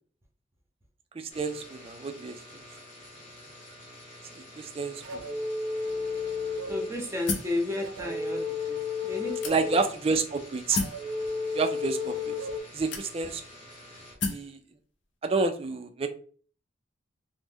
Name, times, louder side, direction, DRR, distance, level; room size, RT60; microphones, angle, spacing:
voice 1, 1.2-2.6 4.4-5.2 9.4-10.8 11.5-12.4 12.7-13.4 14.2-14.6 15.2-16.1, right 4 dB, 30° right, 7 dB, 0.3 m, -29 dB
sound 1, 1.3-14.1, left 1 dB, 40° left, 0.9 m, -49 dB
sound 2, 5.0-6.9 7.8-9.9 10.7-12.6, left 4 dB, 80° right, 0.5 m, -32 dB
voice 2, 6.7-9.8, left 2 dB, 15° right, 1 dB, 0.7 m, -33 dB
sound 3, 7.3-7.6 8.4-8.5 9.4-9.9 10.7-11.1 12.0-12.1 12.9-13.4 14.2-14.5, left 4 dB, 65° left, 0.5 m, -32 dB
3.0 x 2.1 x 3.4 m, 0.43 s
head